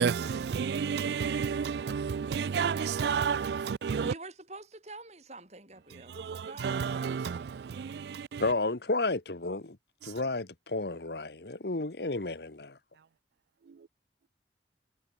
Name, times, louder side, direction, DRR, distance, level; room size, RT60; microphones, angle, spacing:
voice 1, 0.0-4.1 6.2-7.5 7.8-8.4, right 6 dB, 70° right, 0.3 m, -30 dB
voice 2, 4.0-7.5, right 2 dB, 40° right, 7.4 m, -47 dB
voice 3, 8.4-9.8 10.0-12.8, left 2 dB, 65° left, 1.4 m, -32 dB
head